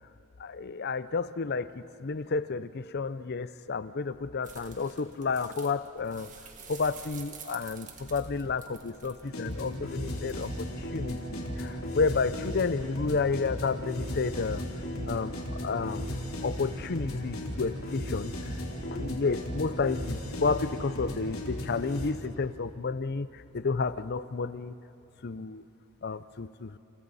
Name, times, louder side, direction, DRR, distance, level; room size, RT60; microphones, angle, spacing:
voice 1, 0.4-6.3 6.7-10.7 10.9-14.7 15.1-15.3 15.6-16.1 16.4-18.3 18.8-24.7 25.2-25.6 26.0-26.8, left 4 dB, 45° left, 14 dB, 0.6 m, -31 dB
sound 1, 4.4-10.5, right 5 dB, 35° right, 1.9 m, -49 dB
sound 2, 9.2-22.1, left 1 dB, 70° left, 3.6 m, -36 dB
29.5 x 29.5 x 4.2 m, 2.9 s
head